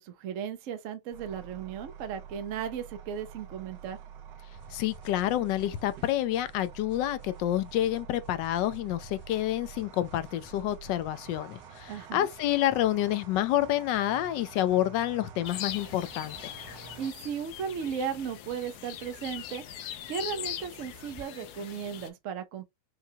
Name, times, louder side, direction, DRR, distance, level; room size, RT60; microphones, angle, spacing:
voice 1, 0.0-4.0 11.9-12.3 17.0-19.6 20.1-22.6, right 7 dB, 65° right, 0.8 m, -36 dB
sound 1, 1.1-17.1, right 8 dB, 90° right, 1.4 m, -48 dB
sound 2, 4.5-21.3, equal, 15° left, 1.0 m, -56 dB
voice 2, 4.7-16.5, left 13 dB, 90° left, 1.3 m, -28 dB
sound 3, 15.4-22.1, left 11 dB, 70° left, 1.0 m, -41 dB
5.6 x 2.3 x 2.7 m
omnidirectional pair, 1.9 m